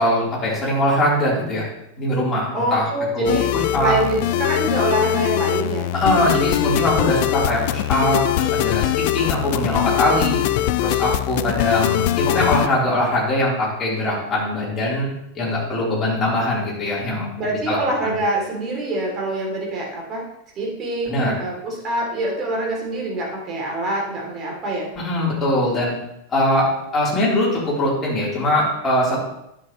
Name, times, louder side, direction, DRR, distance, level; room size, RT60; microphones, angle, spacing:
voice 1, 0.0-1.6 1.9-2.8 3.1-4.0 5.9-10.4 10.8-15.1 15.3-17.3 17.7-18.2 21.1-21.3 25.0-25.9 26.3-29.2, left 1 dB, 20° left, -6 dB, 3.6 m, -21 dB
voice 2, 2.5-5.9 17.4-20.2 20.6-24.9, right 1 dB, 30° right, -1 dB, 2.9 m, -25 dB
sound 1, 3.2-12.7, left 13 dB, 50° left, 0.3 m, -22 dB
10.0 x 7.4 x 3.1 m, 0.81 s
figure-of-eight pair, 90°, 0 cm